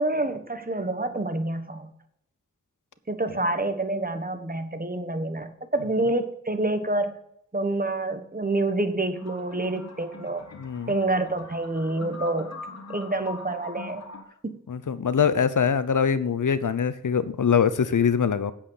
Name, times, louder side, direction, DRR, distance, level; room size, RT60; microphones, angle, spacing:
voice 1, 0.0-1.9 3.1-7.2 7.5-10.5 10.9-14.1 14.4-14.6, right 2 dB, 30° right, 8 dB, 1.4 m, -27 dB
sound 1, 9.1-14.2, left 3 dB, 60° left, 1.8 m, -42 dB
voice 2, 10.5-10.9 14.7-18.5, left 7 dB, 80° left, 14 dB, 0.8 m, -23 dB
8.8 x 7.4 x 5.7 m, 0.71 s
wide cardioid pair, 60°, 30 cm